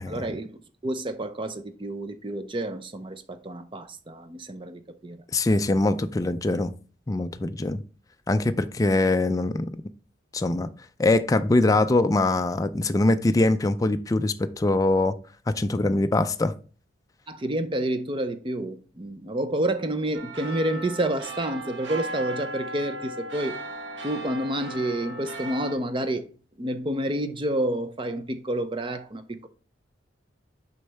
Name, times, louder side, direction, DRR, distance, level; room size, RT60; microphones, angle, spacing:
voice 1, 0.1-5.2 17.3-23.6 24.0-26.3 26.6-29.5, right 1 dB, 25° right, 0.6 m, -29 dB
voice 2, 5.3-6.7 7.1-7.8 8.3-9.7 10.3-10.7 11.0-15.1 15.5-16.5, left 2 dB, 20° left, 0.3 m, -23 dB
sound 1, 20.1-25.8, right 1 dB, 75° right, 1.2 m, -37 dB
6.4 x 5.3 x 3.4 m
head